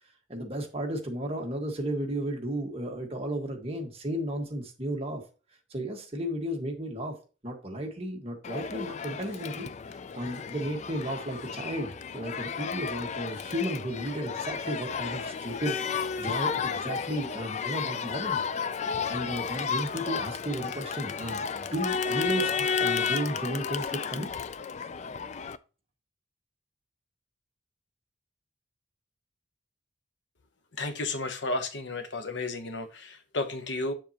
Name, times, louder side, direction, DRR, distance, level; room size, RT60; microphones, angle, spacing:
voice 1, 0.3-5.2 5.7-7.1 7.4-15.8 16.2-18.4 18.8-24.3, right 1 dB, 30° right, 2 dB, 1.4 m, -34 dB
Crowd, 8.4-25.6, left 6 dB, 35° left, 0.3 m, -32 dB
voice 2, 30.8-33.9, left 2 dB, 65° left, 8 dB, 0.9 m, -33 dB
7.4 x 7.1 x 2.9 m, 0.34 s
head